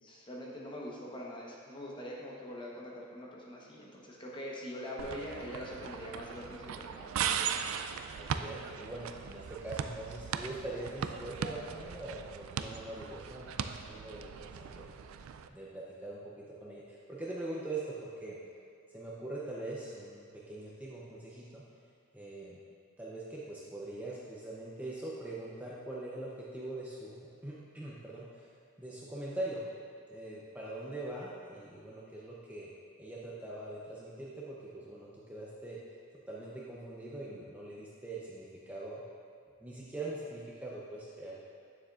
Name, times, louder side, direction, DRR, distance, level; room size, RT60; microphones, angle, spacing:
voice 1, 0.0-7.3, equal, 25° left, -3 dB, 1.0 m, -43 dB
sound 1, 5.0-15.5, right 7 dB, 80° right, 0.3 m, -38 dB
voice 2, 8.1-14.9 15.5-18.4 18.9-21.6 22.1-22.6 23.0-29.6 30.1-32.7 33.0-35.8 36.3-39.0 39.6-41.4, right 2 dB, 10° right, -6 dB, 0.6 m, -42 dB
9.1 x 7.1 x 2.4 m, 2.6 s
head